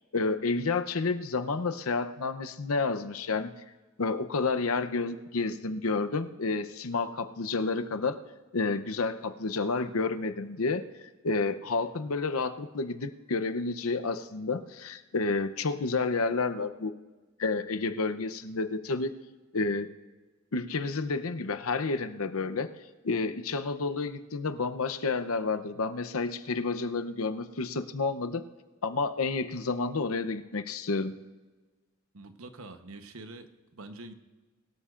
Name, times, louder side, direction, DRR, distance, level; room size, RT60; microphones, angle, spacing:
voice 1, 0.1-3.5 4.0-8.2 8.5-10.8 11.2-16.9 17.4-19.1 19.5-19.9 20.5-22.7 23.0-28.5 28.8-31.1, left 3 dB, 85° left, 9 dB, 0.8 m, -30 dB
voice 2, 32.1-34.1, right 2 dB, 75° right, 8 dB, 1.0 m, -45 dB
23.5 x 13.0 x 2.5 m, 1.3 s
head